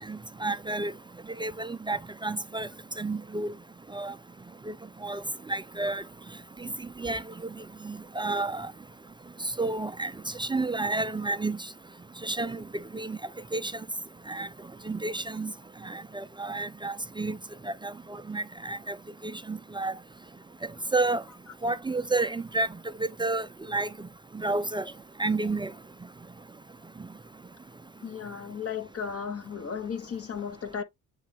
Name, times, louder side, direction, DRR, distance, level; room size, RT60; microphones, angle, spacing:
voice 1, 0.1-0.9 1.4-2.7 3.0-3.5 3.9-4.1 4.7-4.8 5.0-5.2 5.5-6.0 6.6-6.7 7.0-7.2 7.8-8.7 9.4-10.1 10.4-11.6 12.2-13.2 13.5-13.7 14.3-14.5 14.9-15.5 15.8-17.4 17.6-19.0 19.2-19.9 20.9-21.2 21.6-22.7 23.2-23.9 24.3-24.9 25.2-25.7, right 2 dB, 15° right, 0.4 m, -30 dB
voice 2, 28.0-30.8, left 7 dB, 40° left, 1.5 m, -35 dB
8.6 x 3.2 x 3.4 m
cardioid pair, 90°, 35 cm